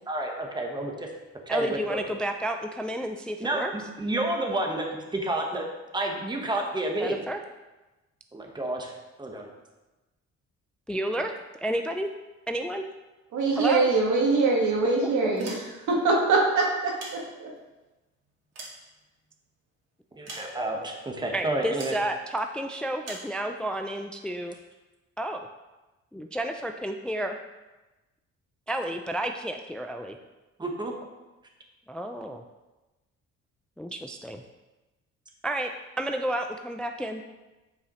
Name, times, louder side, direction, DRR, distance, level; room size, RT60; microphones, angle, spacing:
voice 1, 0.1-1.1 1.5-2.0 3.4-5.6 5.9-7.2 8.3-8.9 9.2-9.5 20.1-21.9 30.6-30.9, right 1 dB, 15° right, 1 dB, 1.1 m, -30 dB
voice 2, 1.5-3.7 7.0-7.4 10.9-11.3 11.6-12.1 12.5-12.8 13.5-13.9 15.0-15.1 21.3-24.5 25.2-25.4 26.1-27.4 28.7-30.2 31.9-32.4 33.8-34.4 35.4-35.7 36.0-37.2, right 1 dB, 5° left, 5 dB, 0.3 m, -31 dB
voice 3, 13.3-15.5 15.9-17.5, right 3 dB, 75° right, -1 dB, 1.7 m, -23 dB
sound 1, 15.2-16.1 16.7-17.7 18.2-19.5 20.3-20.9 21.8-22.1 23.0-23.3, right 2 dB, 55° right, 2.1 m, -43 dB
8.5 x 4.7 x 3.1 m, 1.1 s
cardioid pair, 90°, 30 cm